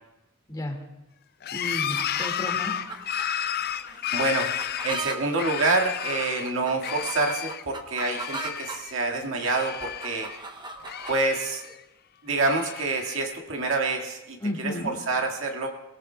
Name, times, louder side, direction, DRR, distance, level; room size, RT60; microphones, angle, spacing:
sound 1, 1.4-6.5 6.8-7.6 8.0-9.0 9.2-10.4 10.8-11.8 12.3-13.3, left 10 dB, 50° left, 0.4 m, -32 dB
voice 1, 1.5-2.7 14.4-14.9, left 1 dB, 20° left, 1 dB, 2.0 m, -32 dB
sound 2, 1.9-8.8 9.3-11.2, right 2 dB, 20° right, 0.8 m, -39 dB
voice 2, 3.9-4.5 4.8-10.3 11.1-11.6 12.2-15.7, right 3 dB, 70° right, 1 dB, 1.9 m, -27 dB
22.5 x 18.0 x 2.3 m, 0.97 s
head